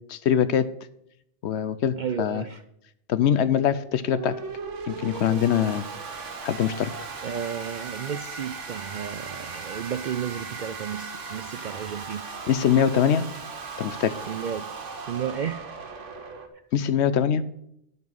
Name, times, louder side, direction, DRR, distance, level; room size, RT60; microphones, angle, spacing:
voice 1, 0.1-0.7 1.4-2.4 3.1-4.4 4.9-5.8 6.4-6.9 12.5-13.3 13.8-14.2 16.7-17.4, left 8 dB, 70° left, 14 dB, 0.9 m, -23 dB
voice 2, 2.0-2.6 7.2-12.3 14.3-14.7 15.1-15.8, right 8 dB, 60° right, 11 dB, 0.5 m, -33 dB
sound 1, 3.9-16.5, right 4 dB, 85° right, 1.5 m, -37 dB
11.0 x 5.6 x 6.4 m, 0.76 s
omnidirectional pair, 1.2 m